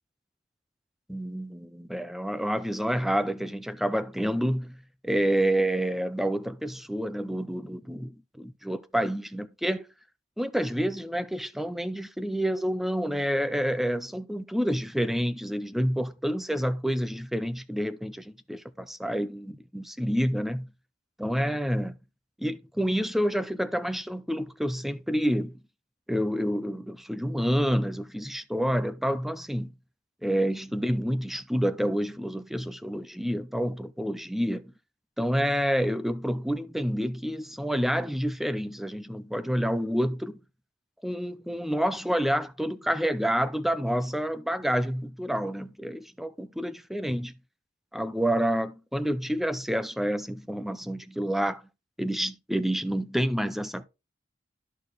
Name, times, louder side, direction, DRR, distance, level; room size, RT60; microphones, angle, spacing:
voice 1, 1.1-4.8 5.0-9.8 10.4-20.7 21.2-21.9 22.4-25.5 26.1-29.7 30.2-34.7 35.2-40.4 41.0-47.3 47.9-51.6 52.0-53.9, equal, ahead, 0.5 m, -28 dB
13.0 x 4.4 x 3.1 m
head